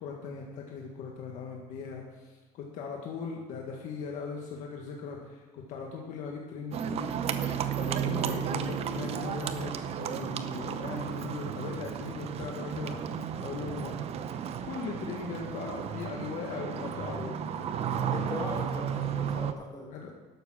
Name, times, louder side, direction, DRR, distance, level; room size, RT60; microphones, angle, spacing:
voice 1, 0.0-7.1 7.8-13.9 14.6-17.8 19.9-20.1, left 5 dB, 70° left, 0 dB, 1.6 m, -39 dB
Livestock farm animals working animals, 6.7-19.5, right 8 dB, 50° right, 0.7 m, -33 dB
voice 2, 8.4-8.7 13.5-13.8 18.1-19.9, left 2 dB, 30° left, -3 dB, 3.5 m, -40 dB
12.0 x 6.9 x 6.2 m, 1.3 s
cardioid pair, 120°, 13 cm